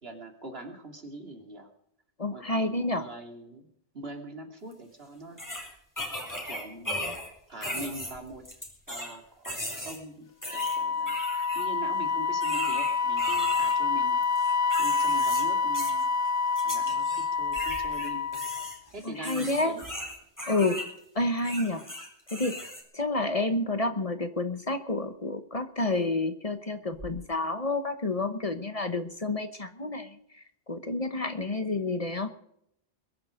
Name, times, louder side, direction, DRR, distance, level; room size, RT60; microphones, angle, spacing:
voice 1, 0.0-1.7 2.3-5.6 6.2-6.9 7.5-8.5 8.9-11.2 11.5-14.2 14.8-16.1 16.6-18.4 18.9-19.8, right 2 dB, 70° right, 3 dB, 3.1 m, -42 dB
voice 2, 2.2-3.0 19.0-19.8 20.5-20.9 21.1-21.9 22.3-32.3, left 2 dB, 35° left, 9 dB, 1.2 m, -29 dB
sound 1, 4.7-4.8 5.4-7.3 7.6-9.1 9.4-10.0 10.4-11.7 12.4-13.8 14.2-15.4 15.7-16.0 16.6-17.3 17.5-20.9 21.4-22.8, equal, 15° left, 4.1 m, -37 dB
Wind instrument woodwind instrument, 10.5-18.8, left 5 dB, 70° left, 0.9 m, -27 dB
sound 2, 16.5-16.8 17.3-19.1 19.8-20.4 25.0-25.1 25.5-25.6 26.0-26.1 26.5-26.6 26.9-27.2, right 1 dB, 40° right, 4.5 m, -49 dB
22.0 x 11.0 x 5.1 m, 0.73 s
omnidirectional pair, 1.1 m